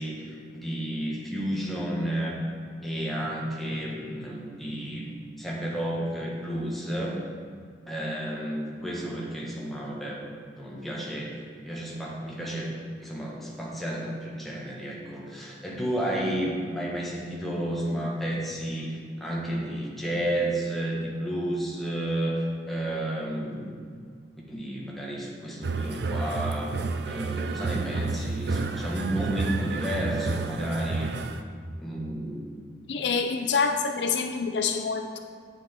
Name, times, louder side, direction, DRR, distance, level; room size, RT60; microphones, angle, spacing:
voice 1, 0.0-2.4 2.8-7.2 7.9-10.2 10.6-23.8 24.5-26.7 27.0-31.1 31.8-32.6, right 1 dB, ahead, -4 dB, 1.5 m, -32 dB
sound 1, 25.6-31.4, right 3 dB, 65° right, 0.5 m, -30 dB
voice 2, 32.9-35.2, left 5 dB, 70° left, 5 dB, 0.6 m, -26 dB
8.9 x 7.1 x 4.5 m, 2.1 s
head